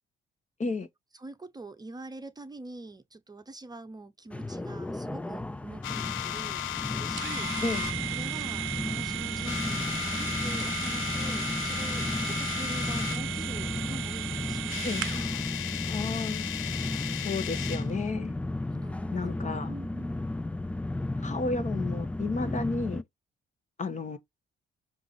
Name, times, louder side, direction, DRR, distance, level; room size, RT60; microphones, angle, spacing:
voice 1, 1.1-7.6 8.1-15.9 18.7-19.4 19.6-20.2, right 2 dB, 20° right, 0.8 m, -44 dB
sound 1, 4.3-23.0, left 2 dB, 5° left, 0.3 m, -34 dB
sound 2, 5.8-7.9 8.7-9.0 9.4-13.2 14.3-14.4 14.6-17.9, left 11 dB, 85° left, 0.9 m, -35 dB
sound 3, 7.2-15.3, right 15 dB, 80° right, 0.6 m, -36 dB
voice 2, 15.9-16.5 17.2-18.4 19.1-19.7 21.2-23.0 23.8-24.2, left 3 dB, 35° left, 1.2 m, -32 dB
6.8 x 2.7 x 5.6 m
cardioid pair, 90°, 20 cm